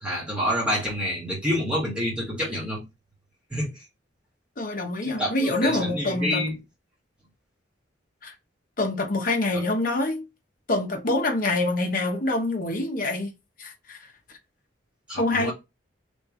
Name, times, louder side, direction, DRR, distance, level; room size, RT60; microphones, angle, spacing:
voice 1, 0.0-2.8 3.5-3.7 5.0-6.6 15.1-15.5, equal, 5° right, 1.7 m, -28 dB
voice 2, 4.6-6.4 8.2-8.3 8.8-10.3 10.7-13.3 13.6-14.0 15.2-15.5, left 2 dB, 45° left, 0.8 m, -25 dB
3.5 x 3.2 x 3.0 m
head